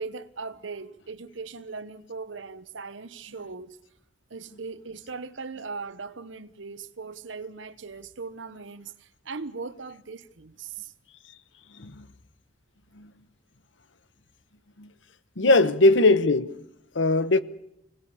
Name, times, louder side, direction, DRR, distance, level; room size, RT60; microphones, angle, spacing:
voice 1, 0.0-3.8 4.3-10.9 15.4-15.7, right 4 dB, 90° right, 1.0 m, -39 dB
voice 2, 15.4-16.6 16.9-17.4, left 2 dB, 80° left, 1.0 m, -20 dB
25.5 x 18.5 x 7.1 m
head